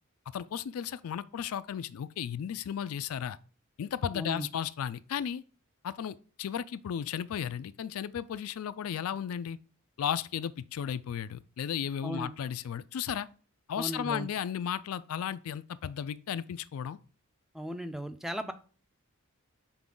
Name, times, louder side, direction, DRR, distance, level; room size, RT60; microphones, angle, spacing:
voice 1, 0.3-3.4 3.8-5.4 5.8-9.6 10.0-13.3 13.7-17.0, left 8 dB, 75° left, 0.4 m, -34 dB
voice 2, 4.1-4.5 12.0-12.3 13.8-14.3 17.5-18.5, equal, ahead, 0.5 m, -36 dB
6.0 x 4.2 x 3.7 m
head